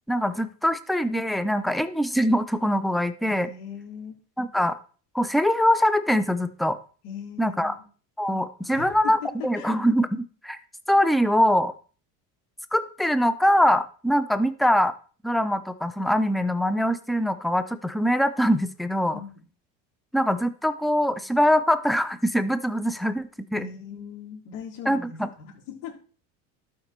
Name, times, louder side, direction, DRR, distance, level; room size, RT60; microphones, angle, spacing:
voice 1, 0.1-3.5 4.4-4.8 5.1-6.8 7.4-7.7 8.2-10.6 10.9-11.7 12.7-14.9 15.2-19.2 20.1-23.7 24.9-25.1, equal, ahead, 12 dB, 0.3 m, -23 dB
voice 2, 3.2-4.2 7.0-7.8 8.6-9.8 19.1-19.4 23.5-25.9, left 7 dB, 80° left, 1 dB, 3.6 m, -39 dB
12.5 x 5.1 x 4.3 m, 0.40 s
cardioid pair, 140°, 38 cm